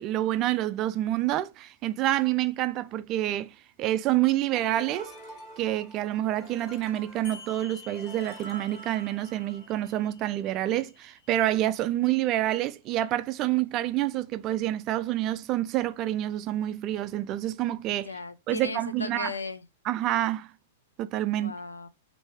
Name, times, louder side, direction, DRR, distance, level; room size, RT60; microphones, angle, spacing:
voice 1, 0.0-5.1 5.6-18.1 18.5-19.3 19.9-20.5 21.0-21.5, right 14 dB, 35° right, 0.3 m, -28 dB
sound 1, 4.5-10.0, right 1 dB, 25° left, 1.3 m, -47 dB
sound 2, 7.2-12.3, left 6 dB, 65° left, 1.5 m, -51 dB
voice 2, 18.1-19.6 21.3-21.9, left 3 dB, 90° left, 0.4 m, -36 dB
3.1 x 2.6 x 3.2 m
hypercardioid pair, 110°, 0 cm